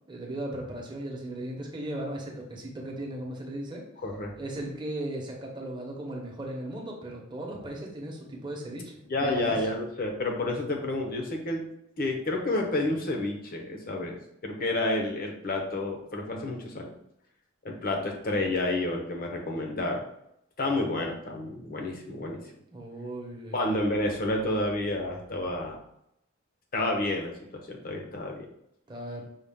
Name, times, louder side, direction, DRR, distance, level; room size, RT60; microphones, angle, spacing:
voice 1, 0.1-3.8 4.4-9.5 22.7-23.7 28.9-29.3, right 1 dB, 25° right, -2 dB, 0.9 m, -37 dB
voice 2, 4.0-4.3 9.1-11.7 12.0-14.2 14.4-16.9 17.6-20.0 20.6-22.4 23.5-25.8 26.7-28.5, left 2 dB, 45° left, 1 dB, 0.8 m, -30 dB
5.5 x 2.4 x 3.6 m, 0.78 s
head